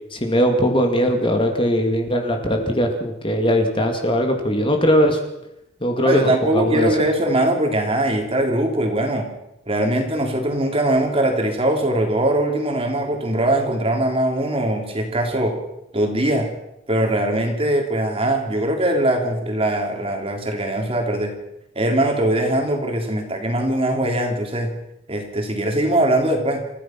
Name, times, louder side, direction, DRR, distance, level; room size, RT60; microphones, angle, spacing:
voice 1, 0.1-5.2 5.8-6.9, equal, 25° left, 4 dB, 2.3 m, -20 dB
voice 2, 6.0-9.3 9.7-15.6 15.9-16.5 16.9-21.3 21.8-24.7 25.1-26.6, right 1 dB, 25° right, 3 dB, 3.4 m, -21 dB
29.0 x 15.0 x 6.0 m, 0.85 s
head